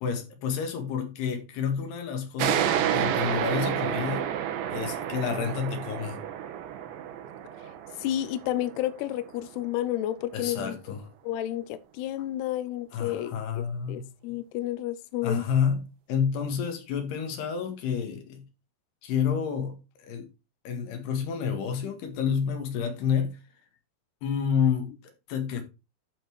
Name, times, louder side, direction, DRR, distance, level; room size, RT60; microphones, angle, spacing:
voice 1, 0.0-4.3 4.7-6.2 10.3-11.0 12.9-14.1 15.2-15.8 16.1-18.4 19.0-20.2 20.7-23.4 24.2-25.6, left 7 dB, 65° left, 3.6 m, -29 dB
sound 1, 2.4-9.6, right 10 dB, 80° right, 3.4 m, -30 dB
voice 2, 8.0-10.8 11.2-15.4, left 13 dB, 85° left, 2.3 m, -31 dB
12.0 x 4.4 x 4.6 m
omnidirectional pair, 5.3 m